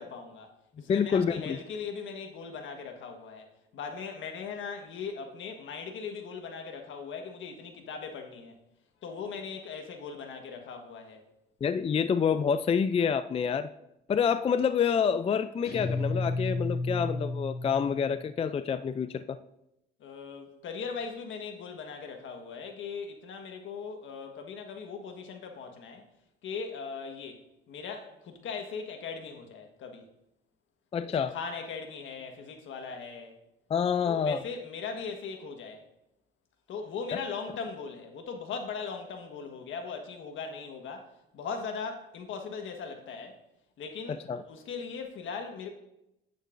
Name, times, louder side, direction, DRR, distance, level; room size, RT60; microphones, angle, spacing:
voice 1, 0.0-8.5 9.0-11.3 20.0-26.1 26.4-27.4 27.7-30.1 31.1-33.3 34.0-35.9 36.7-43.4 43.8-45.7, left 5 dB, 75° left, 1.4 m, -39 dB
voice 2, 0.9-1.6 11.6-13.7 14.1-19.4 30.9-31.3 33.7-34.4 37.1-37.2 44.1-44.4, left 6 dB, 30° left, 0.4 m, -27 dB
Guitar, 15.6-18.2, left 2 dB, 50° left, 2.4 m, -32 dB
9.3 x 8.9 x 2.6 m
cardioid pair, 90°, 20 cm